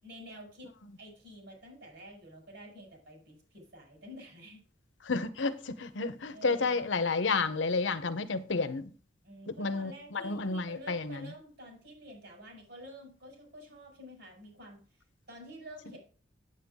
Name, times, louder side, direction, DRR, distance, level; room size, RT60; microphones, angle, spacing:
voice 1, 0.0-0.7 1.0-4.6 6.3-6.8 9.2-16.0, equal, 70° right, 5.6 m, -49 dB
voice 2, 5.0-8.9 9.5-11.3, left 4 dB, 80° left, 0.8 m, -31 dB
8.8 x 8.0 x 3.6 m
head